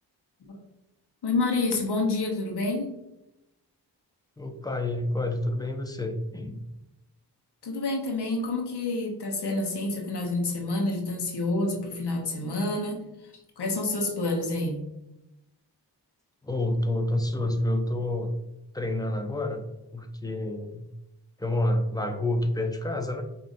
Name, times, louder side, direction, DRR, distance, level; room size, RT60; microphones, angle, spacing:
voice 1, 1.2-2.9 7.6-13.0 13.6-14.8, left 2 dB, 70° left, 1 dB, 1.0 m, -28 dB
voice 2, 4.4-6.6 16.4-18.4 18.7-19.7 19.9-20.8 21.4-23.2, left 1 dB, 10° left, 5 dB, 0.6 m, -28 dB
5.0 x 2.7 x 2.6 m, 0.92 s
cardioid pair, 50°, 41 cm